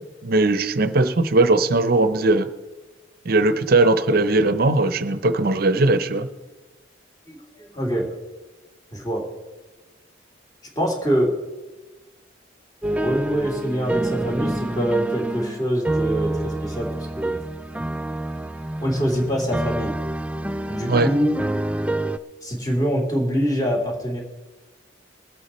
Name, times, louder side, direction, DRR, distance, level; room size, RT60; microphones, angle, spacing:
voice 1, 0.2-2.5 3.3-6.3 20.9-21.1, right 2 dB, 50° right, 12 dB, 0.8 m, -19 dB
voice 2, 7.3-8.1 8.9-9.2 10.8-11.3 12.8-17.4 18.8-20.0 20.7-21.3 22.4-24.2, equal, 20° left, 0 dB, 2.7 m, -24 dB
sound 1, 12.8-22.2, right 1 dB, 5° right, 0.3 m, -27 dB
21.0 x 8.2 x 4.3 m, 1.2 s
head